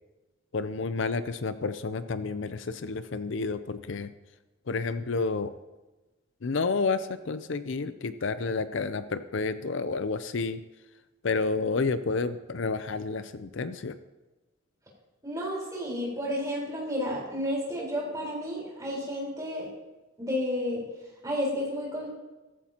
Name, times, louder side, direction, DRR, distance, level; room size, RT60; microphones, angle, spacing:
voice 1, 0.5-4.1 4.7-5.6 6.4-10.6 11.2-14.0, left 4 dB, 65° left, 12 dB, 0.5 m, -30 dB
voice 2, 15.2-19.7 20.2-20.8 21.2-22.1, equal, 15° right, -4 dB, 4.3 m, -31 dB
16.5 x 14.5 x 2.9 m, 1.1 s
head